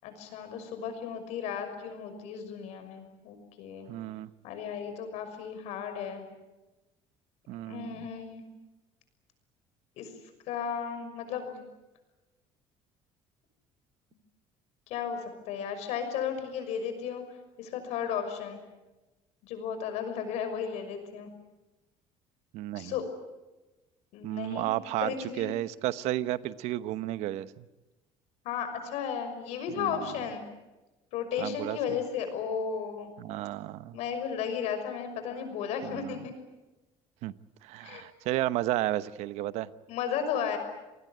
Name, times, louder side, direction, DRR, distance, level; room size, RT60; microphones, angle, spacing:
voice 1, 0.0-3.9 4.4-6.2 7.7-8.4 10.0-10.1 10.5-11.6 14.9-17.2 17.6-18.6 19.4-21.3 22.8-23.0 24.1-24.7 25.0-25.5 28.4-30.4 31.1-33.1 33.9-36.3 37.8-38.1 39.9-40.6, left 7 dB, 80° left, 8 dB, 6.1 m, -34 dB
voice 2, 3.9-4.3 7.5-8.1 22.5-22.9 24.2-27.6 29.8-30.0 31.4-32.0 33.2-34.0 35.8-36.2 37.2-37.3 37.6-39.7, right 15 dB, 80° right, 14 dB, 1.0 m, -33 dB
28.0 x 19.5 x 9.5 m, 1.1 s
cardioid pair, 130°, 11 cm